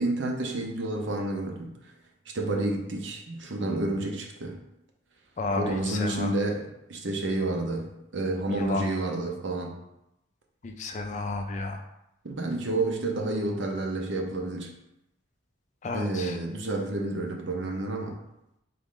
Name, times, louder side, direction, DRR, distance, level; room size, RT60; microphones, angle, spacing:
voice 1, 0.0-1.7 2.3-4.6 5.6-9.7 12.2-14.7 15.9-18.2, right 2 dB, 65° right, 2 dB, 0.7 m, -30 dB
voice 2, 5.4-6.3 8.5-8.9 10.6-11.8 15.8-16.4, left 2 dB, 35° left, 4 dB, 0.4 m, -32 dB
3.7 x 3.1 x 3.7 m, 0.86 s
head